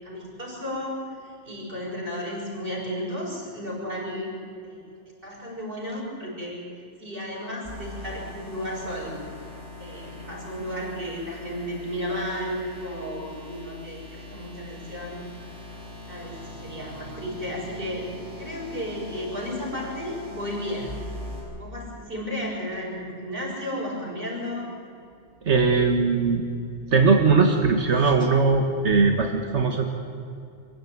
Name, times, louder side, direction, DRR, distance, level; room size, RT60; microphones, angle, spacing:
voice 1, 0.0-4.4 4.6-4.8 5.2-6.6 7.0-9.2 9.8-15.2 16.1-18.1 18.4-21.0 21.6-24.8, equal, 50° right, -3 dB, 6.6 m, -33 dB
sound 1, 7.6-21.4, left 1 dB, 85° left, 6.9 m, -41 dB
voice 2, 25.5-26.4 26.9-29.9, right 4 dB, 75° right, 4 dB, 1.9 m, -20 dB
25.0 x 16.0 x 9.5 m, 2.5 s
omnidirectional pair, 1.2 m